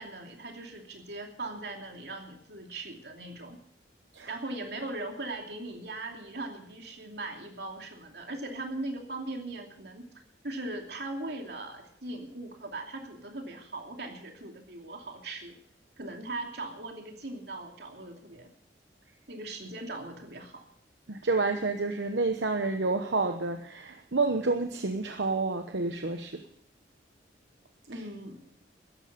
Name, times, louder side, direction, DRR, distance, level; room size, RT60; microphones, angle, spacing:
voice 1, 0.0-3.6 4.3-10.1 10.4-15.6 16.0-18.5 19.3-20.7 27.9-28.5, right 2 dB, 70° right, 3 dB, 2.7 m, -39 dB
voice 2, 21.1-26.4, right 3 dB, 85° right, 6 dB, 1.0 m, -29 dB
13.5 x 11.0 x 6.8 m, 0.65 s
head